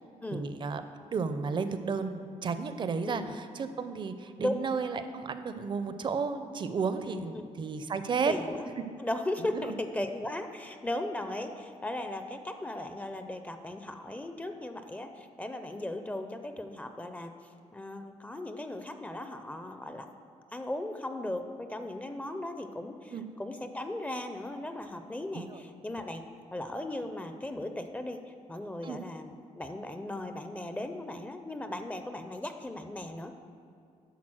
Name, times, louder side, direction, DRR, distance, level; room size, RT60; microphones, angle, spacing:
voice 1, 0.3-0.8 1.1-8.3 9.5-9.6 23.1-23.2 25.3-25.6 28.8-29.0, right 5 dB, 40° right, 10 dB, 0.5 m, -33 dB
voice 2, 8.3-8.6 9.0-17.3 17.7-20.1 20.5-26.2 26.5-33.4, left 1 dB, 10° left, 7 dB, 0.5 m, -37 dB
10.5 x 4.1 x 6.2 m, 2.4 s
cardioid pair, 125°, 12 cm